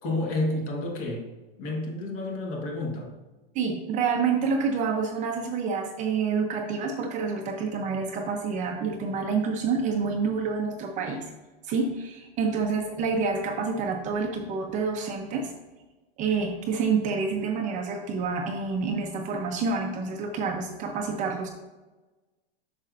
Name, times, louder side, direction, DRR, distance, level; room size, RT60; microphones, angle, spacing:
voice 1, 0.0-1.3 1.6-3.1, left 2 dB, 40° left, 1 dB, 1.7 m, -30 dB
voice 2, 3.5-11.3 11.6-15.5 16.2-21.5, right 5 dB, 25° right, 2 dB, 0.7 m, -28 dB
8.3 x 6.4 x 2.6 m, 1.2 s
supercardioid pair, 155°, 29 cm